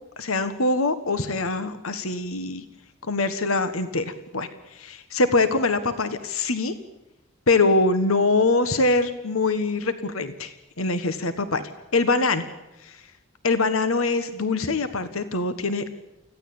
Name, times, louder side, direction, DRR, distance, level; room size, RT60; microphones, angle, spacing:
voice 1, 0.2-2.6 3.1-6.7 7.5-12.4 12.8-13.0 13.4-15.8, left 3 dB, 85° left, 11 dB, 1.5 m, -23 dB
25.0 x 16.0 x 8.8 m, 0.99 s
head